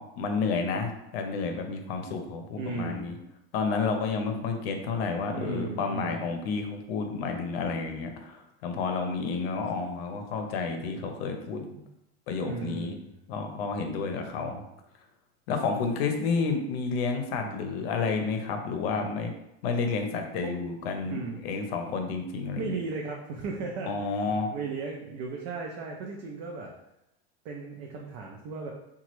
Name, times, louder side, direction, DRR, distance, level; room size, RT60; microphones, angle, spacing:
voice 1, 0.0-3.2 3.5-11.6 12.3-12.9 13.3-14.6 15.5-19.3 19.6-22.7 23.9-24.5, left 4 dB, 75° left, 5 dB, 0.6 m, -30 dB
voice 2, 2.6-3.2 5.3-6.3 11.7-11.8 12.4-13.0 17.4-18.0 19.0-19.3 20.4-20.6 21.1-21.4 22.6-24.2 24.5-26.7 27.4-28.7, right 4 dB, 60° right, 0 dB, 0.5 m, -36 dB
2.9 x 2.3 x 3.0 m, 0.86 s
supercardioid pair, 135°, 30 cm